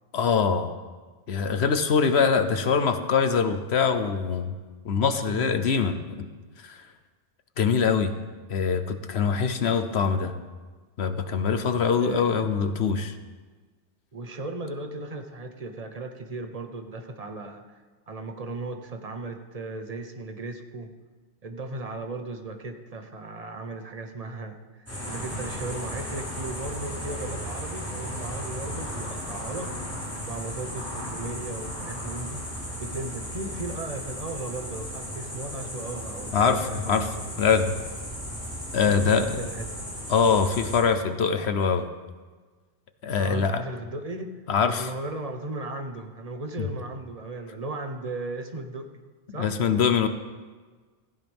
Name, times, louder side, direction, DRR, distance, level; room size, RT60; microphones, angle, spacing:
voice 1, 0.1-0.7 1.3-4.5 4.8-6.3 6.6-6.8 7.6-8.1 8.5-10.3 11.0-13.2 36.3-37.1 37.4-37.7 38.7-39.3 40.1-41.9 43.0-43.6 44.5-44.9 49.3-50.1, left 6 dB, 60° left, 9 dB, 1.1 m, -23 dB
voice 2, 5.3-5.6 12.0-12.5 14.1-17.8 18.1-20.9 21.4-29.8 30.3-32.5 32.8-37.2 38.9-39.9 43.2-44.4 44.8-48.9 49.3-49.5, right 2 dB, 30° right, 6 dB, 1.1 m, -36 dB
sound 1, 24.9-40.8, equal, 10° left, 4.0 m, -35 dB
16.5 x 15.0 x 3.6 m, 1.4 s
omnidirectional pair, 1.3 m